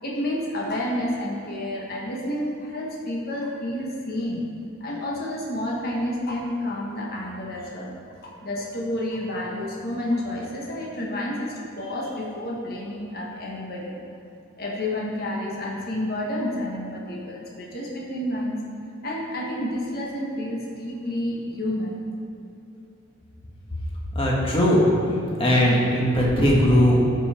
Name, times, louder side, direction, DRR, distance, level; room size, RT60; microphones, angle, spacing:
voice 1, 0.0-4.4 4.8-7.9 8.2-14.0 14.6-18.6 19.0-22.0, left 1 dB, 50° left, -3 dB, 1.5 m, -30 dB
voice 2, 24.1-24.9 25.4-27.0, equal, 25° left, -4 dB, 1.7 m, -19 dB
13.0 x 5.6 x 4.4 m, 2.8 s
head